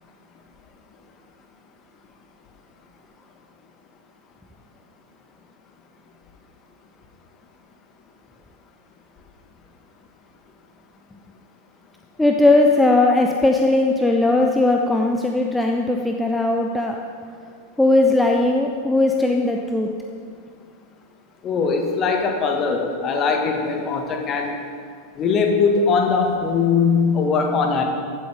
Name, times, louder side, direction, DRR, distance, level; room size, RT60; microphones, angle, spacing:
voice 1, 12.2-17.0 17.8-19.9, left 2 dB, 5° left, 1 dB, 0.8 m, -18 dB
voice 2, 21.4-24.5 25.2-27.8, left 5 dB, 30° left, 2 dB, 1.9 m, -20 dB
15.5 x 12.5 x 3.7 m, 2.1 s
figure-of-eight pair, 90°, 0 cm